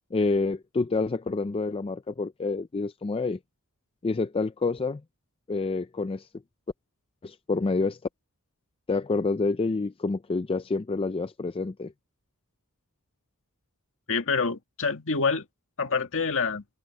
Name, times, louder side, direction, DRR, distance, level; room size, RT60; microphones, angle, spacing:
voice 1, 0.1-3.4 4.0-5.0 5.5-6.3 7.2-8.0 8.9-11.9, left 3 dB, 25° left, 0.4 m, -28 dB
voice 2, 14.1-15.5 15.8-16.6, left 4 dB, 60° left, 2.1 m, -26 dB
head